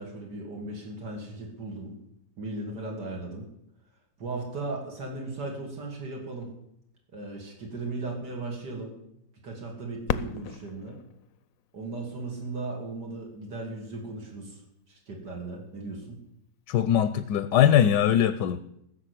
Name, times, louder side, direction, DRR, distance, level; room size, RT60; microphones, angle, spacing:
voice 1, 0.0-1.9 2.4-3.5 4.2-6.5 7.1-9.0 9.4-11.0 11.7-14.6 14.9-16.2, right 2 dB, 80° right, 0 dB, 3.4 m, -37 dB
Fireworks, 10.0-12.8 13.5-13.6 14.3-14.7 16.6-16.8, left 9 dB, 65° left, 1.0 m, -36 dB
voice 2, 16.7-18.6, left 10 dB, 80° left, 13 dB, 1.3 m, -21 dB
15.5 x 6.7 x 8.3 m, 0.77 s
omnidirectional pair, 1.8 m